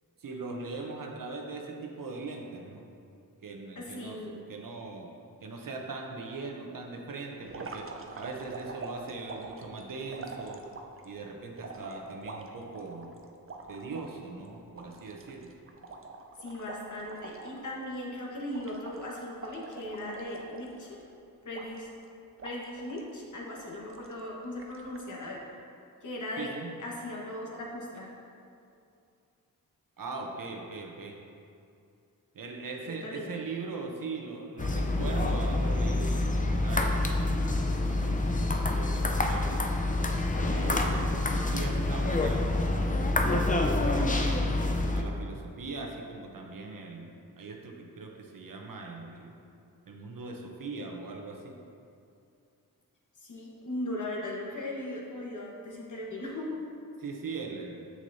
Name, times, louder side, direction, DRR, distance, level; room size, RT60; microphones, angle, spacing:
voice 1, 0.2-2.8 3.4-5.1 5.4-7.9 8.2-10.6 11.0-13.1 13.7-15.5 26.4-26.7 30.0-31.2 32.3-37.0 37.9-39.6 40.5-44.5 44.9-47.1 47.4-49.3 49.9-51.5 57.0-57.8, right 3 dB, 60° right, 1 dB, 0.8 m, -40 dB
voice 2, 3.7-4.4 16.4-21.0 21.4-21.9 22.4-25.4 26.0-26.5 26.8-28.1 32.8-33.3 40.4-40.8 53.2-56.6, left 1 dB, 55° left, -3 dB, 1.3 m, -38 dB
sound 1, 7.5-11.1 11.6-14.1 14.5-14.6 14.8-17.7 18.0-18.2 18.5-21.0 21.5-22.0 22.4-23.1 23.6-24.2 24.6-25.1, right 3 dB, 35° right, 0.6 m, -44 dB
sound 2, 34.6-45.0, left 2 dB, 20° left, 0.5 m, -27 dB
6.3 x 6.3 x 2.7 m, 2.5 s
cardioid pair, 60°, 37 cm